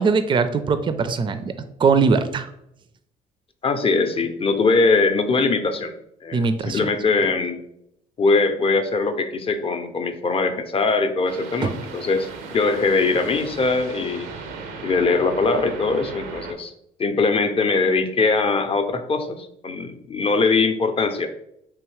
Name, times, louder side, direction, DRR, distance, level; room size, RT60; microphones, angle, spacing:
voice 1, 0.0-1.5 1.8-2.5 6.3-6.9 11.6-11.7, right 5 dB, 30° right, 10 dB, 0.4 m, -20 dB
voice 2, 3.6-5.9 6.2-7.6 8.2-14.3 14.8-16.7 17.0-21.3, left 3 dB, 35° left, 8 dB, 0.5 m, -21 dB
sound 1, 11.3-16.5, right 4 dB, 80° right, 0.5 m, -36 dB
3.6 x 2.8 x 3.1 m, 0.77 s
hypercardioid pair, 60°, 17 cm